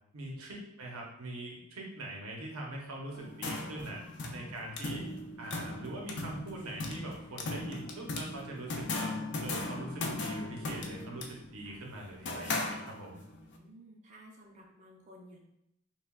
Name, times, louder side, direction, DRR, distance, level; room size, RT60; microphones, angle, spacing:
voice 1, 0.1-4.0 4.3-5.1 5.4-13.2, right 1 dB, 85° right, -1 dB, 0.8 m, -43 dB
sound 1, 3.1-13.3, left 2 dB, 55° left, 0.5 m, -38 dB
voice 2, 13.3-15.4, equal, 35° right, -2 dB, 0.6 m, -54 dB
5.7 x 2.3 x 2.3 m, 0.79 s
head